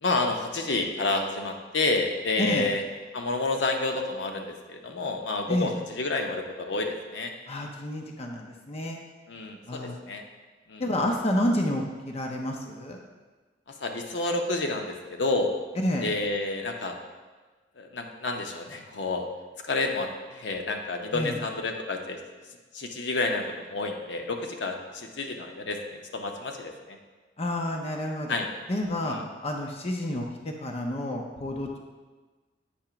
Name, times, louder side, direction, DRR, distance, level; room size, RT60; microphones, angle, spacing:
voice 1, 0.0-2.8 3.1-7.3 9.3-9.8 10.1-10.2 10.7-10.8 13.8-15.5 16.0-16.9 17.8-19.3 19.7-22.2 22.7-25.8 26.1-27.0 28.3-28.5 29.0-29.2, left 2 dB, 70° left, 3 dB, 0.7 m, -29 dB
voice 2, 7.5-9.0 9.7-10.0 10.8-13.0 15.8-16.1 21.1-21.4 27.4-28.3 28.7-29.2 29.4-31.8, left 1 dB, 35° left, 1 dB, 0.6 m, -29 dB
8.5 x 2.9 x 5.7 m, 1.3 s
head